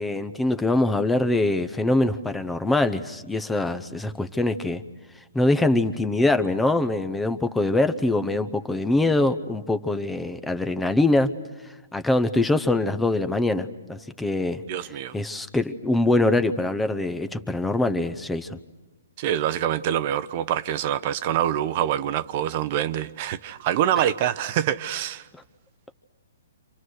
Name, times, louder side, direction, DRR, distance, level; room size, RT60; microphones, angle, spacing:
voice 1, 0.0-4.8 5.1-11.3 11.6-14.6 15.1-18.6 24.0-24.1, left 2 dB, 5° left, 0.8 m, -23 dB
voice 2, 14.7-15.1 19.2-25.3, right 11 dB, 40° right, 0.8 m, -25 dB
29.0 x 27.0 x 6.5 m
hypercardioid pair, 150°, 0 cm